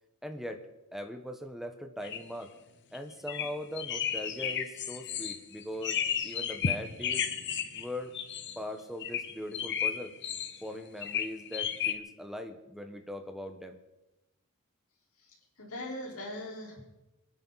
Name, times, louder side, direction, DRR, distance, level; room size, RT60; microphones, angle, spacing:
voice 1, 0.2-0.7 0.9-2.5 2.9-7.3 7.7-8.1 8.6-10.1 10.6-13.8, left 1 dB, ahead, 5 dB, 1.1 m, -40 dB
sound 1, 2.0-2.2 2.9-3.0 3.3-3.5 3.8-7.9 8.1-8.6 9.0-10.6 11.0-11.9, left 8 dB, 55° left, 1.0 m, -33 dB
voice 2, 15.2-16.8, left 1 dB, 70° left, -3 dB, 4.5 m, -41 dB
26.5 x 9.8 x 4.1 m, 0.99 s
head